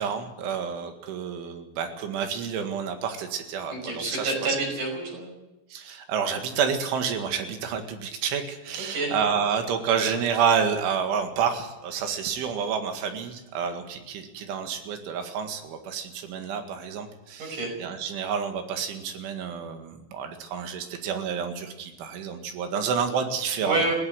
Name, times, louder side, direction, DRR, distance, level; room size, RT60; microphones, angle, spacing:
voice 1, 0.0-4.3 5.7-23.9, right 7 dB, 80° right, 6 dB, 4.3 m, -29 dB
voice 2, 3.7-5.3 8.9-9.1 17.4-17.7 23.6-23.9, right 2 dB, 40° right, 3 dB, 6.9 m, -28 dB
20.0 x 17.0 x 7.8 m, 0.97 s
omnidirectional pair, 5.5 m